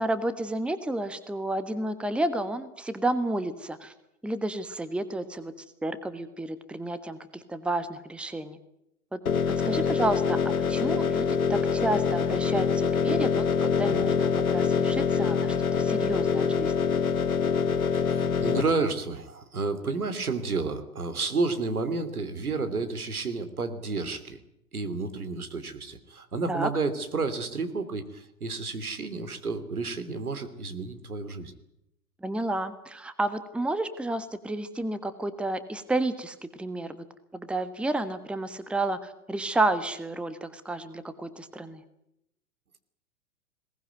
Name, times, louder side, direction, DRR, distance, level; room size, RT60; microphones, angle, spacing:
voice 1, 0.0-3.9 4.2-5.5 5.8-8.6 9.1-9.2 9.6-16.9 26.5-26.7 32.2-37.0 37.3-41.8, right 2 dB, ahead, 12 dB, 1.3 m, -31 dB
sound 1, 9.3-18.6, left 6 dB, 70° left, 2.2 m, -25 dB
voice 2, 17.9-24.4 24.7-31.5, right 4 dB, 75° right, 9 dB, 3.0 m, -31 dB
21.5 x 19.0 x 9.4 m, 0.82 s
figure-of-eight pair, 100°, 44 cm